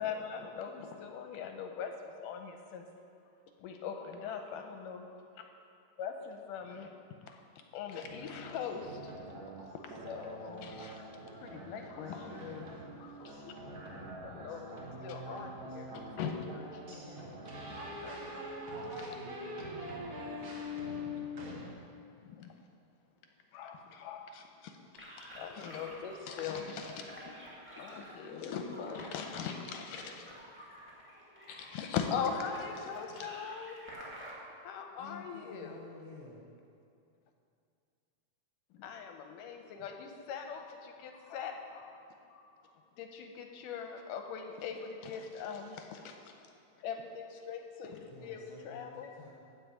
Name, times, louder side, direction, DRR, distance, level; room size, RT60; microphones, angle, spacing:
voice 1, 0.0-2.8 3.6-5.5 6.0-6.9 7.2-7.4 7.7-9.1 9.7-11.0 11.4-13.5 14.2-16.8 18.0-18.2 22.2-22.5 23.5-24.8 25.2-27.4 27.7-30.3 31.5-33.8 34.6-35.8 38.7-42.0 42.3-46.3 46.8-49.1, left 6 dB, 80° left, 4 dB, 2.1 m, -41 dB
voice 2, 4.0-4.6 12.1-12.8 16.8-17.4 17.7-20.4 29.0-29.6, right 1 dB, 85° right, -5 dB, 4.5 m, -50 dB
sound 1, 8.0-21.7, left 1 dB, 60° right, 0.9 m, -44 dB
sound 2, 25.0-34.4, equal, 10° right, 0.8 m, -50 dB
voice 3, 28.2-29.2 35.0-36.4 48.0-49.3, left 3 dB, 65° left, -3 dB, 1.6 m, -51 dB
12.5 x 4.7 x 8.1 m, 2.5 s
omnidirectional pair, 4.1 m